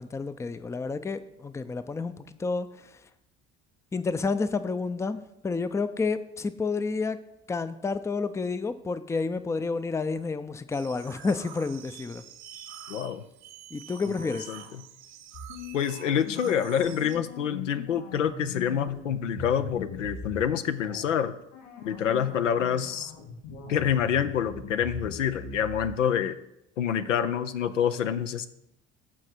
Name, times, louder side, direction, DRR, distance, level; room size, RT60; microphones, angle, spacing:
voice 1, 0.0-3.0 3.9-7.2 7.5-12.2 13.7-14.5, left 4 dB, 10° left, 12 dB, 0.5 m, -30 dB
sound 1, 10.7-17.2, right 8 dB, 65° right, 1.3 m, -46 dB
voice 2, 12.9-13.2 14.5-14.6 15.7-21.3 21.8-23.1 23.7-26.4 26.8-28.5, left 8 dB, 80° left, 11 dB, 0.6 m, -27 dB
sound 2, 15.3-20.4 20.8-21.1 21.5-25.9, left 3 dB, 60° left, 2.9 m, -40 dB
13.5 x 4.8 x 4.4 m, 0.82 s
figure-of-eight pair, 60°, 37 cm